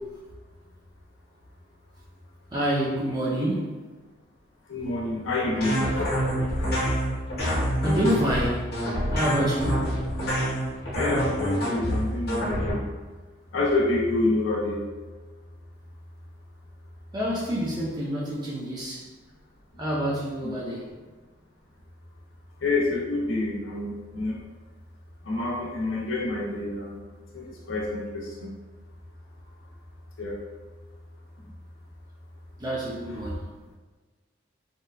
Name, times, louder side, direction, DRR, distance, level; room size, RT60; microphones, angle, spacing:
voice 1, 2.5-3.7 7.8-8.8 9.1-9.9 17.1-19.0 19.8-21.0 32.6-33.4, equal, 20° right, -5 dB, 0.5 m, -27 dB
voice 2, 4.7-6.7 10.9-12.8 13.5-14.8 20.4-20.5 22.6-24.4 25.3-27.0 27.3-28.5 30.2-30.4, left 2 dB, 85° left, -4 dB, 0.5 m, -28 dB
sound 1, 5.6-12.7, equal, 50° left, 0.8 m, -27 dB
2.8 x 2.3 x 2.2 m, 1.3 s
head